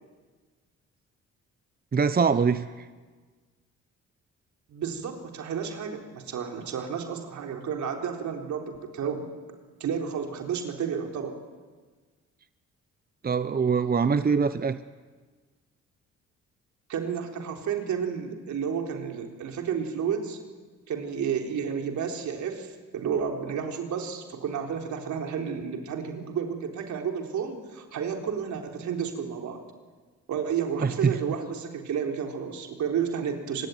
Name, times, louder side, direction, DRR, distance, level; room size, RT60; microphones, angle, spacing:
voice 1, 1.9-2.8 13.2-14.8 30.8-31.1, right 5 dB, 30° right, 12 dB, 0.9 m, -23 dB
voice 2, 4.7-9.3 9.8-11.4 16.9-20.4 20.9-29.6 30.3-33.7, right 7 dB, 75° right, 3 dB, 4.0 m, -31 dB
25.0 x 21.0 x 9.5 m, 1.4 s
cardioid pair, 70°, 29 cm